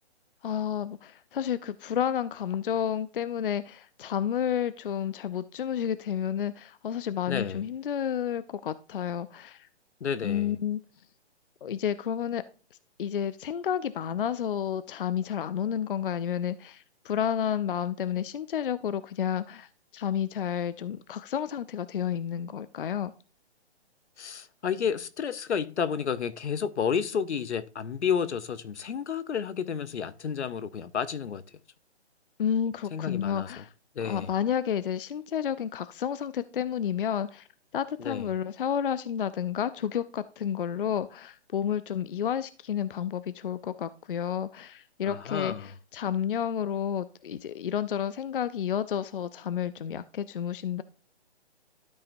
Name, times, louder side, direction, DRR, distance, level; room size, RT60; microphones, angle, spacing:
voice 1, 0.4-9.7 10.2-10.8 11.6-12.4 13.0-19.7 19.9-23.1 32.4-33.7 34.0-37.5 37.7-50.8, left 9 dB, 55° left, 0.5 m, -31 dB
voice 2, 7.3-7.6 10.0-10.5 24.2-31.4 32.9-33.6 33.9-34.3 38.0-38.3 45.0-45.7, left 7 dB, 80° left, 0.9 m, -31 dB
12.5 x 5.6 x 2.6 m
hypercardioid pair, 160°, 34 cm